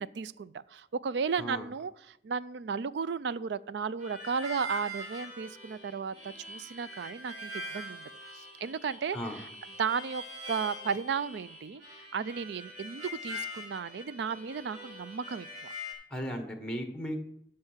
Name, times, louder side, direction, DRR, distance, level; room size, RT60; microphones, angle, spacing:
voice 1, 0.0-6.1 6.5-8.1 8.3-9.5 9.8-11.8 12.1-15.7, right 6 dB, 65° right, 17 dB, 0.4 m, -34 dB
Harmonica, 4.0-15.9, left 1 dB, 50° right, 4.1 m, -43 dB
voice 2, 16.1-17.2, equal, 5° left, 4 dB, 1.3 m, -36 dB
11.5 x 5.5 x 5.7 m, 0.76 s
head